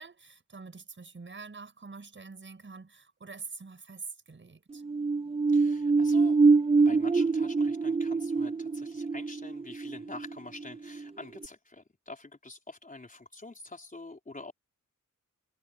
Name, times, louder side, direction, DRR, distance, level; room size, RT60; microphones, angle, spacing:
voice 1, 0.0-4.8, right 4 dB, 35° right, 6.3 m, -45 dB
sound 1, 4.7-11.1 11.4-11.5, right 4 dB, 20° right, 0.4 m, -25 dB
voice 2, 5.5-6.4 6.8-14.5, left 2 dB, 25° left, 4.9 m, -46 dB
wide cardioid pair, 160°, 33 cm